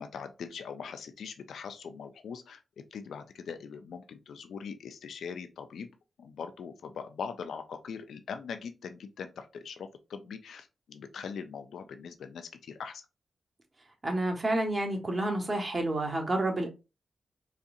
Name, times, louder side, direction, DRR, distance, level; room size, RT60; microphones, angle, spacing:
voice 1, 0.0-2.6 2.9-5.9 6.2-13.0, left 6 dB, 80° left, 0.5 m, -41 dB
voice 2, 14.0-16.7, right 1 dB, 40° right, 1.3 m, -29 dB
4.1 x 2.5 x 2.4 m
supercardioid pair, 40°, 0 cm